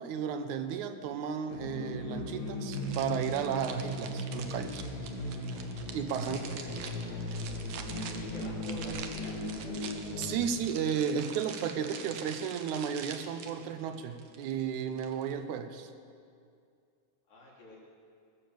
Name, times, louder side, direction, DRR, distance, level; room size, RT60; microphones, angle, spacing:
voice 1, 0.0-4.9 5.9-6.4 10.2-15.9, right 7 dB, 80° right, 9 dB, 2.2 m, -33 dB
sound 1, 1.5-10.5, left 1 dB, 50° left, 1.3 m, -37 dB
sound 2, 2.7-15.4, right 6 dB, 65° right, 1.7 m, -46 dB
voice 2, 6.2-6.9 8.1-9.4 17.3-17.8, left 1 dB, 75° left, -6 dB, 4.5 m, -47 dB
19.5 x 7.1 x 7.7 m, 2.4 s
omnidirectional pair, 3.5 m